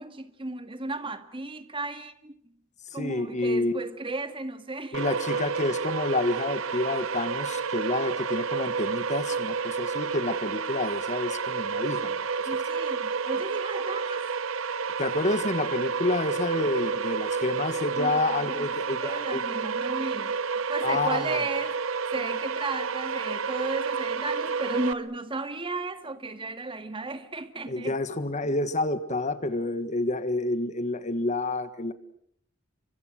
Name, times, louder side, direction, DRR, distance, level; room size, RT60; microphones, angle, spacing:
voice 1, 0.0-2.4 2.9-5.2 12.5-14.2 18.0-20.4 20.7-21.8 22.1-28.0, right 2 dB, 25° right, 1.9 m, -35 dB
voice 2, 2.9-3.8 4.9-12.1 15.0-19.4 20.8-21.3 27.7-31.9, left 2 dB, 35° left, 1.5 m, -29 dB
sound 1, 4.9-24.9, right 5 dB, 75° right, 1.0 m, -30 dB
29.5 x 24.5 x 6.4 m
head